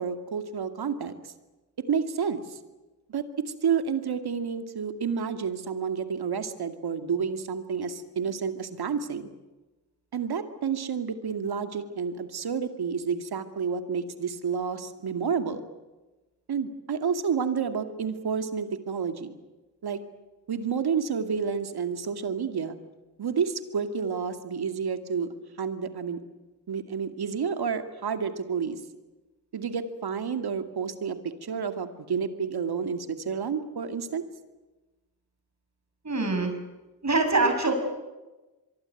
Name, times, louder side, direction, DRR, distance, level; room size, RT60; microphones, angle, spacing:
voice 1, 0.0-1.3 1.8-2.6 3.1-3.3 3.6-9.3 10.1-15.6 16.5-19.4 19.8-20.0 20.5-22.8 23.2-25.3 25.6-26.2 26.7-28.8 29.5-34.2, right 6 dB, 75° right, 9 dB, 2.4 m, -30 dB
voice 2, 36.0-36.6 37.0-37.7, right 3 dB, 45° right, 6 dB, 7.1 m, -24 dB
24.5 x 23.5 x 9.3 m, 1.1 s
supercardioid pair, 45°, 39 cm